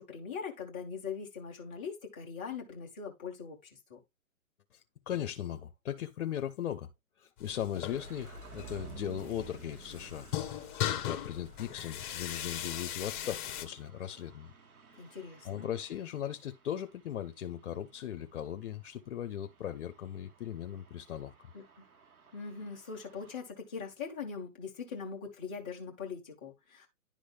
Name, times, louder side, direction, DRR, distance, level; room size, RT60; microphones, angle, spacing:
voice 1, 0.0-4.0 15.0-15.7 21.5-21.8 22.3-26.9, left 6 dB, 10° left, 0.4 m, -41 dB
voice 2, 5.1-6.9 7.2-10.3 10.8-14.5 15.4-21.3, left 10 dB, 55° left, 0.8 m, -38 dB
sound 1, 7.4-13.7, left 11 dB, 35° left, 1.1 m, -39 dB
sound 2, 7.9-23.4, right 6 dB, 90° right, 1.6 m, -55 dB
10.5 x 3.8 x 3.3 m
hypercardioid pair, 140°, 43 cm